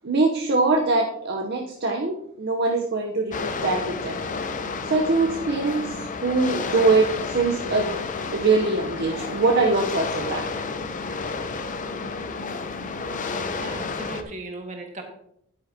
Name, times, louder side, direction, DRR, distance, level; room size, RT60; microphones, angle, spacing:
voice 1, 0.0-4.2 4.9-7.9 8.3-10.5, right 3 dB, 50° right, 1 dB, 0.9 m, -23 dB
sound 1, 3.3-14.2, left 4 dB, 40° left, 0.6 m, -31 dB
voice 2, 13.4-15.0, right 2 dB, 35° right, 2 dB, 1.7 m, -38 dB
10.5 x 8.8 x 2.8 m, 0.73 s
head